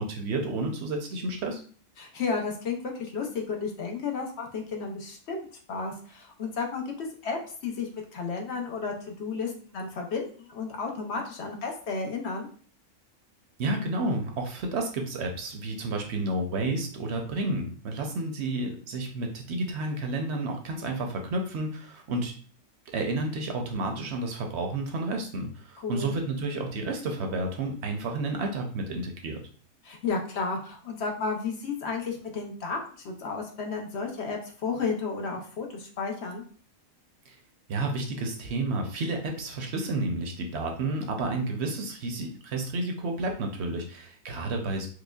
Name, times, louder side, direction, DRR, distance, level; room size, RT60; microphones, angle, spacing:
voice 1, 0.0-1.6 13.6-22.3 22.9-29.4 37.3-37.4 37.7-44.9, right 2 dB, 60° right, 3 dB, 0.8 m, -31 dB
voice 2, 2.0-12.5 25.8-26.1 29.8-32.8 33.0-36.4, left 4 dB, 60° left, 1 dB, 0.8 m, -33 dB
4.8 x 2.1 x 2.3 m, 0.43 s
omnidirectional pair, 1.4 m